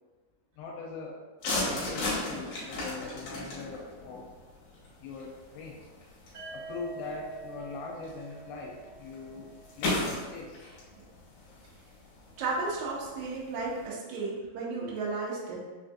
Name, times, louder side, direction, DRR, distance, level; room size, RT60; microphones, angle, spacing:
voice 1, 0.6-1.2 1.6-4.3 5.0-5.8 6.5-10.6, left 4 dB, 85° left, -2 dB, 2.5 m, -41 dB
sound 1, 1.4-13.9, left 2 dB, 65° left, 2.3 m, -37 dB
sound 2, 6.3-10.2, right 4 dB, 65° right, 1.4 m, -46 dB
voice 2, 12.4-15.6, right 3 dB, 85° right, -5 dB, 1.6 m, -33 dB
5.7 x 2.6 x 2.4 m, 1.3 s
omnidirectional pair, 4.4 m